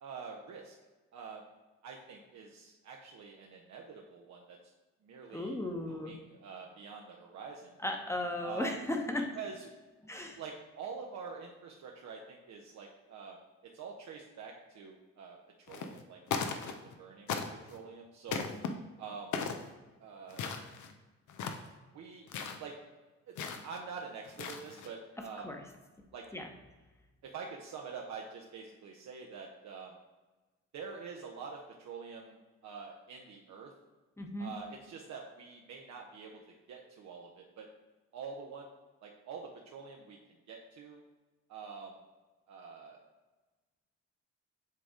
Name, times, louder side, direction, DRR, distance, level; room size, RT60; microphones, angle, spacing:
voice 1, 0.0-0.7 1.1-1.4 1.8-4.6 5.0-5.6 5.9-7.8 8.4-8.8 9.4-9.6 10.1-13.4 13.7-15.4 15.7-16.7 17.0-17.4 17.7-18.4 19.0-19.4 20.0-20.5 21.9-22.3 22.6-22.8 23.3-25.5 26.1-26.3 27.2-29.9 30.7-33.7 34.4-36.4 36.7-37.7 38.1-38.7 39.0-40.2 40.5-41.0 41.5-42.0 42.5-43.0, right 5 dB, 65° right, 0 dB, 0.8 m, -46 dB
voice 2, 5.3-6.1 7.8-9.3 10.0-10.4 25.4-25.6 26.3-26.5 34.2-34.5, left 1 dB, 10° left, 3 dB, 1.0 m, -36 dB
sound 1, 15.7-16.0 16.3-16.9 17.3-17.8 18.3-18.7 19.3-19.7 20.3-20.9 21.3-21.7 22.3-22.6 23.4-23.8 24.2-24.9, left 6 dB, 75° left, 0.8 m, -37 dB
7.5 x 3.5 x 3.7 m, 1.2 s
cardioid pair, 90°, 30 cm